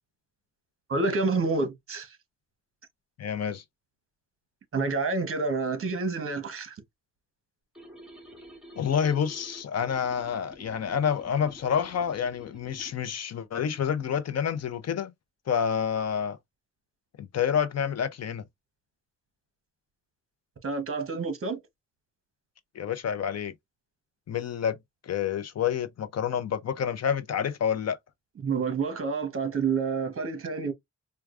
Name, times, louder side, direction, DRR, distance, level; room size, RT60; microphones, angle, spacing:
voice 1, 0.9-2.1 4.7-6.8 20.6-21.6 28.4-30.7, right 4 dB, 45° right, 1.0 m, -28 dB
voice 2, 3.2-3.6 8.8-15.1 15.5-16.4 17.2-18.4 22.7-23.5 24.3-24.8 25.0-28.0, left 8 dB, 55° left, 0.6 m, -28 dB
sound 1, 7.8-13.0, equal, ahead, 1.6 m, -49 dB
4.6 x 2.2 x 2.4 m
wide cardioid pair, 145°, 31 cm